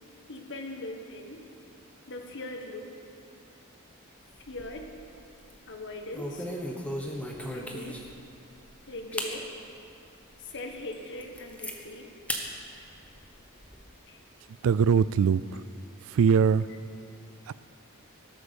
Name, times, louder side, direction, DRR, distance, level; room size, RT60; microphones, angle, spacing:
voice 1, 0.3-1.4 2.1-2.9 4.5-4.9 5.7-6.5 7.4-8.1 8.9-9.5 10.5-12.1 14.1-14.2, left 1 dB, 55° left, 4 dB, 1.4 m, -40 dB
sound 1, 4.3-5.0 5.4-5.6 6.1-8.2 8.7-8.8 9.1-9.4 9.9-10.0 10.5-10.6 10.9-11.8 12.3-12.5 12.9-13.8, equal, 5° left, 1.2 m, -36 dB
voice 2, 14.6-15.6 16.0-16.7 17.5-17.6, right 6 dB, 65° right, 18 dB, 0.3 m, -22 dB
18.0 x 8.1 x 7.0 m, 2.5 s
head